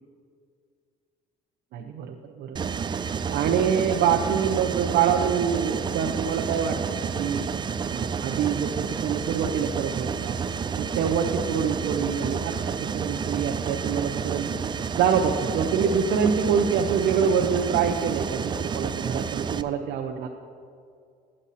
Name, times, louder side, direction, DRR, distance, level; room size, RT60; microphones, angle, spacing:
voice 1, 1.7-2.7 3.0-7.5 7.9-10.4 10.8-14.5 14.9-20.3, right 7 dB, 75° right, 2 dB, 0.8 m, -26 dB
Mechanisms, 2.6-19.6, right 6 dB, 25° right, 0.4 m, -30 dB
12.5 x 8.9 x 4.1 m, 2.4 s
cardioid pair, 110°, 17 cm